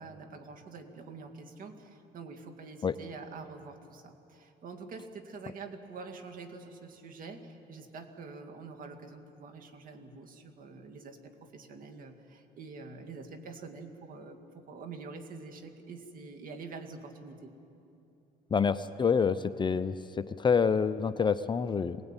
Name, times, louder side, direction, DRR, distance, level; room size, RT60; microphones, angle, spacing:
voice 1, 0.0-17.5, right 4 dB, 55° right, 5 dB, 2.3 m, -46 dB
voice 2, 18.5-19.9 20.4-22.0, left 6 dB, 25° left, 12 dB, 0.6 m, -27 dB
23.5 x 18.5 x 9.0 m, 2.8 s
cardioid pair, 110°, 17 cm